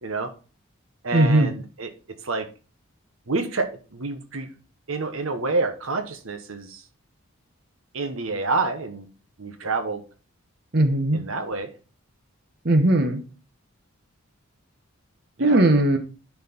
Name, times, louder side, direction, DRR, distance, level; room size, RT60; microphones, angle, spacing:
voice 1, 0.0-0.3 1.0-2.5 3.3-4.5 4.9-6.8 7.9-9.1 9.4-10.0 11.1-11.7 15.4-15.6, right 3 dB, 80° right, 7 dB, 1.2 m, -28 dB
voice 2, 1.1-1.5 10.7-11.2 12.6-13.2 15.4-16.0, right 1 dB, 50° right, 6 dB, 1.1 m, -18 dB
10.5 x 4.7 x 4.3 m, 0.35 s
head